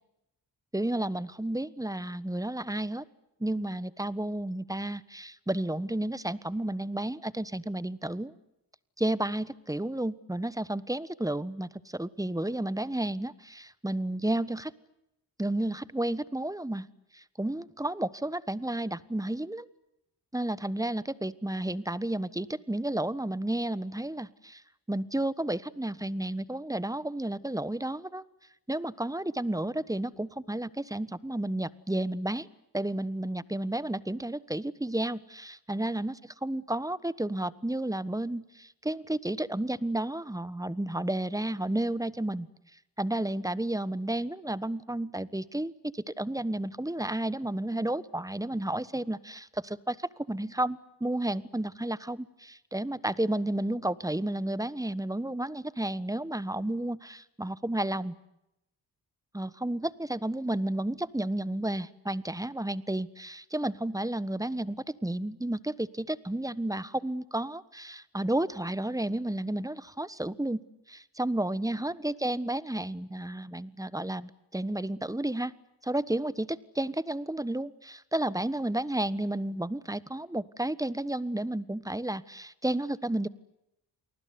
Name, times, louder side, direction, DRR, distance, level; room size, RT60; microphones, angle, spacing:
voice 1, 0.7-3.0 3.4-8.3 9.0-14.7 15.4-16.9 17.1-19.7 20.3-24.6 24.9-28.2 28.7-32.5 32.7-42.5 43.0-58.1 59.3-70.6 70.9-75.5 75.8-83.3, right 1 dB, 10° right, 18 dB, 1.3 m, -32 dB
28.5 x 19.5 x 9.7 m, 0.86 s
cardioid pair, 55°, 43 cm